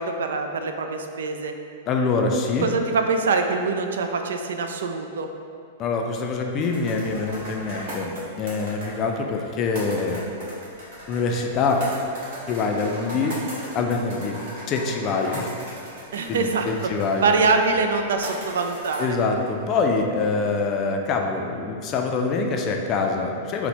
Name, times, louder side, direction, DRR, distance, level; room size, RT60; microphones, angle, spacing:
voice 1, 0.0-1.5 2.6-5.3 16.1-16.7 17.2-19.1, right 4 dB, 90° right, 5 dB, 0.3 m, -24 dB
voice 2, 1.9-2.7 5.8-8.1 8.4-10.2 11.1-11.8 12.5-13.4 13.7-14.4 14.7-15.6 16.3-17.2 19.0-23.7, left 4 dB, 30° left, 2 dB, 0.4 m, -25 dB
sound 1, 6.6-19.8, equal, 55° right, 1.1 m, -38 dB
4.1 x 2.1 x 4.3 m, 2.4 s
supercardioid pair, 150°, 0 cm